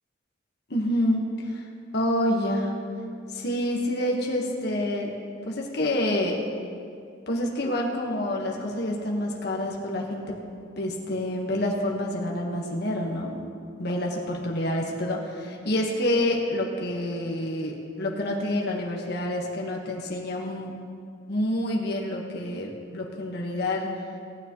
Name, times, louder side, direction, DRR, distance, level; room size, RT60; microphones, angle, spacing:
voice 1, 0.7-1.6 1.9-2.7 3.3-5.1 5.5-6.4 7.3-13.4 13.8-20.7 21.3-23.9, left 1 dB, 65° left, -1 dB, 1.4 m, -28 dB
18.0 x 9.8 x 3.1 m, 2.4 s
head